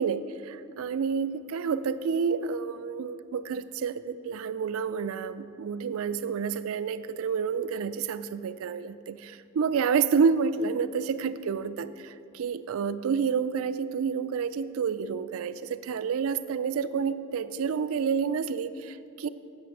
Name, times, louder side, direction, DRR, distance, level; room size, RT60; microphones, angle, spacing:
voice 1, 0.0-19.3, right 6 dB, 85° right, 13 dB, 0.4 m, -29 dB
7.6 x 6.0 x 7.6 m, 2.6 s
head